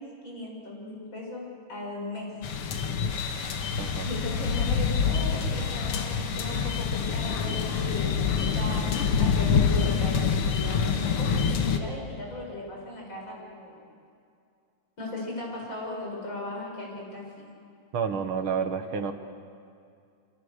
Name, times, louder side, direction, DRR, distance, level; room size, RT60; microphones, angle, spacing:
voice 1, 0.0-2.3 4.0-10.2 10.5-13.8 15.0-17.5, left 2 dB, 60° left, -2 dB, 7.3 m, -37 dB
sound 1, 2.4-11.8, left 6 dB, 80° left, 2.2 m, -26 dB
voice 2, 17.9-19.1, right 6 dB, 70° right, 7 dB, 2.1 m, -29 dB
27.0 x 26.5 x 6.6 m, 2.4 s
omnidirectional pair, 2.4 m